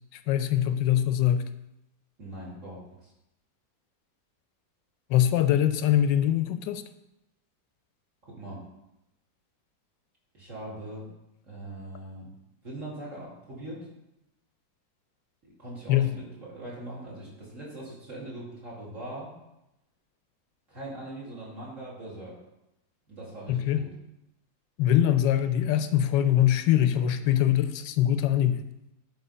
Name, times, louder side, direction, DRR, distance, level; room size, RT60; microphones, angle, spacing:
voice 1, 0.3-1.4 5.1-6.8 15.9-16.1 23.5-23.8 24.8-28.6, left 11 dB, 85° left, 11 dB, 1.2 m, -23 dB
voice 2, 2.2-3.1 8.3-8.7 10.3-11.1 11.4-12.3 12.6-13.9 15.4-19.3 20.7-22.4 23.1-23.9, right 1 dB, 45° right, -6 dB, 2.9 m, -41 dB
10.5 x 3.7 x 5.5 m, 0.88 s
omnidirectional pair, 1.9 m